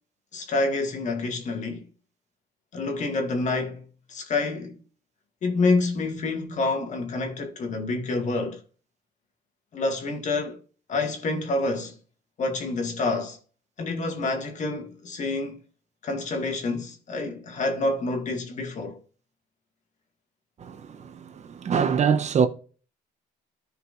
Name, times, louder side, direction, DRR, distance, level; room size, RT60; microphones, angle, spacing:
voice 1, 0.3-1.9 2.7-4.8 5.4-8.6 9.7-10.6 10.9-12.0 12.4-13.4 13.8-15.6 16.0-19.0, left 3 dB, 45° left, 2.0 m, -28 dB
voice 2, 20.6-21.1 21.6-22.5, right 7 dB, 45° right, 0.9 m, -23 dB
14.0 x 4.8 x 2.6 m
cardioid pair, 110°, 17 cm